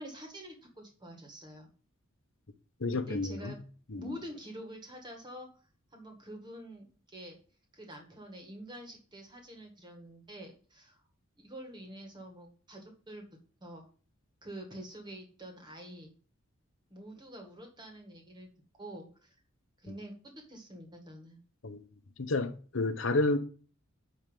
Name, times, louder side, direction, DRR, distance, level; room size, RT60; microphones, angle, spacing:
voice 1, 0.0-1.7 3.0-3.6 3.9-5.5 5.9-7.4 7.7-11.0 11.4-13.2 13.6-13.9 14.4-16.1 16.9-18.5 18.8-19.4 19.8-21.4, right 1 dB, 20° right, 1.9 m, -47 dB
voice 2, 2.8-3.6 3.9-4.2 21.6-21.8 22.2-23.4, left 2 dB, 65° left, 0.9 m, -30 dB
9.4 x 3.4 x 5.2 m
head